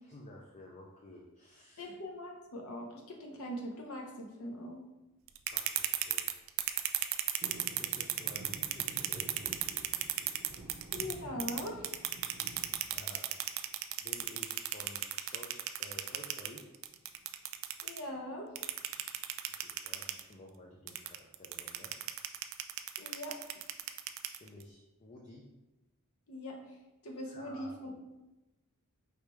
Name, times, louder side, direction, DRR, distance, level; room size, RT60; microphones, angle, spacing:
voice 1, 0.0-1.9 5.5-6.3 7.8-9.4 12.8-13.3 14.0-16.6 19.6-21.9 24.4-25.4 27.3-27.8, left 1 dB, 30° left, -1 dB, 0.5 m, -52 dB
voice 2, 1.8-4.8 10.9-11.9 17.8-18.5 23.0-23.4 26.3-26.8 27.0-27.9, left 1 dB, 75° left, 1 dB, 0.9 m, -41 dB
sound 1, 5.3-11.1 11.4-18.0 18.6-20.2 20.9-24.6, right 14 dB, 60° right, 0.3 m, -34 dB
sound 2, 7.4-13.6 14.0-14.6 15.9-16.3 16.6-16.7 16.9-17.2 18.1-19.0 19.5-19.6, right 2 dB, 45° right, 0.7 m, -51 dB
4.9 x 3.2 x 3.1 m, 1.0 s
head